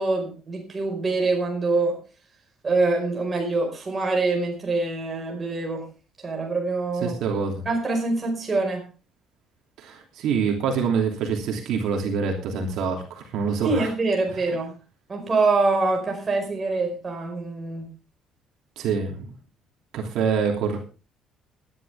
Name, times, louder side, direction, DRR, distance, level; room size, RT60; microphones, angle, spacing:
voice 1, 0.0-2.0 2.6-5.9 6.2-7.2 7.6-8.8 13.6-14.7 15.1-17.9, right 3 dB, 20° right, 1 dB, 5.0 m, -25 dB
voice 2, 7.0-7.6 9.8-13.9 18.8-19.3 19.9-20.8, right 6 dB, 65° right, 2 dB, 3.0 m, -26 dB
19.5 x 11.0 x 3.5 m, 0.33 s
cardioid pair, 175°, 0 cm